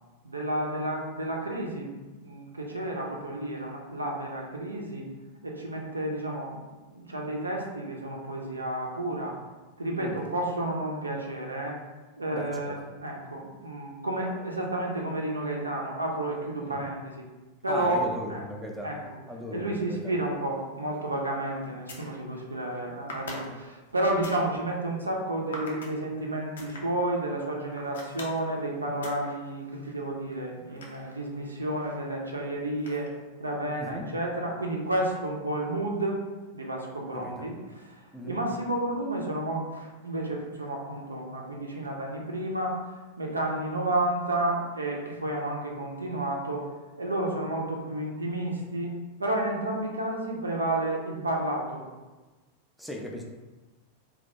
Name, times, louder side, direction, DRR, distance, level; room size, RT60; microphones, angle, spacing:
voice 1, 0.2-5.1 5.4-9.4 9.8-11.8 12.2-12.8 13.0-17.2 17.6-18.0 18.3-18.4 18.8-19.0 19.5-33.1 33.4-36.2 36.5-42.8 43.2-46.7 47.0-48.9 49.2-51.8, right 1 dB, 80° right, -1 dB, 0.4 m, -31 dB
voice 2, 12.3-12.8 16.6-16.8 17.7-20.1 33.7-34.1 37.1-37.5 38.1-38.4 52.8-53.2, equal, ahead, -1 dB, 0.3 m, -38 dB
sound 1, 20.9-21.1 21.7-22.2 23.1-24.5 25.5-26.0 26.6-26.8 27.7-28.4 29.0-29.3 29.7-31.5 32.8-33.3, left 1 dB, 65° left, 0.5 m, -42 dB
2.2 x 2.1 x 2.7 m, 1.2 s
figure-of-eight pair, 90°, 0 cm